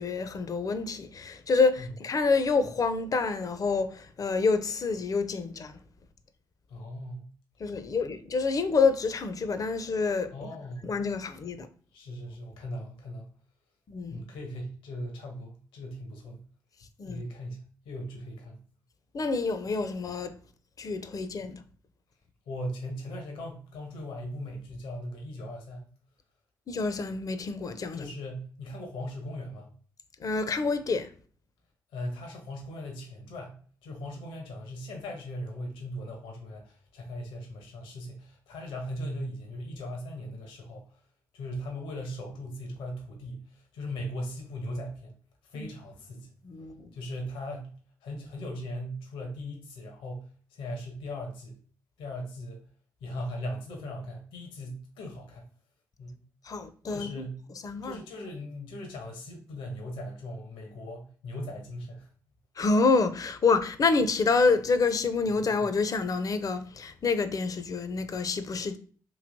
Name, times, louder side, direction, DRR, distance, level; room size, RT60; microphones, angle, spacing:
voice 1, 0.0-5.8 7.6-10.5 10.8-11.7 13.9-14.2 17.0-17.2 19.1-20.3 20.8-21.5 26.7-28.1 30.2-31.1 45.5-45.7 46.4-46.9 56.4-57.2 57.6-58.0 62.6-68.8, left 4 dB, 45° left, 0.5 m, -27 dB
voice 2, 6.7-7.2 10.3-10.9 11.9-13.3 14.1-16.4 17.1-18.6 22.5-25.9 27.9-29.7 31.9-40.8 41.3-45.1 45.5-46.3 46.9-47.7 48.0-51.6 52.0-52.6 53.0-55.4 56.0-56.2 56.9-57.4 57.8-62.1, left 1 dB, 80° left, 0.8 m, -39 dB
3.1 x 2.8 x 2.6 m
hypercardioid pair, 45°, 9 cm